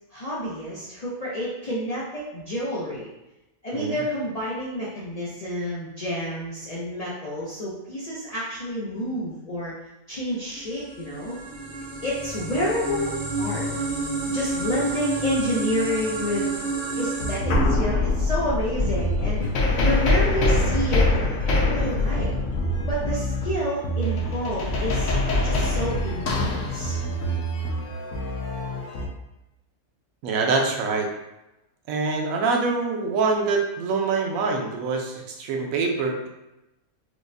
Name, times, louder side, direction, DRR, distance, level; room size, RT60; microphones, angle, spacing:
voice 1, 0.1-3.1 3.6-9.7 10.1-11.4 12.0-13.7 14.3-16.5 17.0-19.5 19.8-22.3 22.9-25.1 25.4-27.0, equal, 90° left, -7 dB, 0.3 m, -29 dB
sound 1, 10.5-17.4, right 3 dB, 45° right, 0.4 m, -30 dB
sound 2, 16.7-16.8 17.2-29.1, left 2 dB, 65° left, 1.1 m, -24 dB
voice 2, 30.2-31.1 31.9-36.3, right 4 dB, 70° right, 2 dB, 1.0 m, -25 dB
4.8 x 2.1 x 2.5 m, 0.94 s
omnidirectional pair, 1.6 m